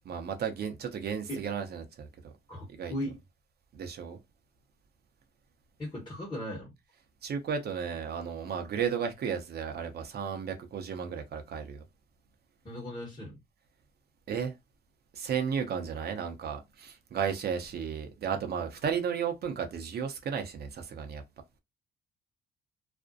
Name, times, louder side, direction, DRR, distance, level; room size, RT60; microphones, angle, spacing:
voice 1, 0.0-2.3 2.8-2.9 3.7-4.2 7.2-11.8 14.3-14.5 15.1-21.2, right 7 dB, 55° right, 0.6 m, -34 dB
voice 2, 2.5-3.2 5.8-6.7 12.6-13.4, equal, 25° left, 1.1 m, -37 dB
2.5 x 2.1 x 2.5 m
cardioid pair, 90°, 20 cm